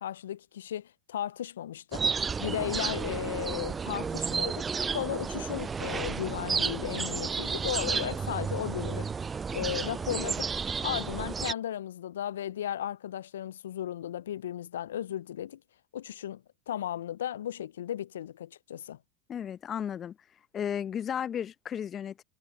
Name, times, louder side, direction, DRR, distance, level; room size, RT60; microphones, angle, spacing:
voice 1, 0.0-2.1 2.4-9.1 9.5-10.5 10.8-15.6 15.9-19.0, left 11 dB, 75° left, 0.6 m, -35 dB
sound 1, 1.9-11.5, right 5 dB, 25° right, 0.3 m, -32 dB
voice 2, 19.3-20.2 20.5-22.2, left 9 dB, 35° left, 0.9 m, -34 dB
hypercardioid pair, 80°, 0 cm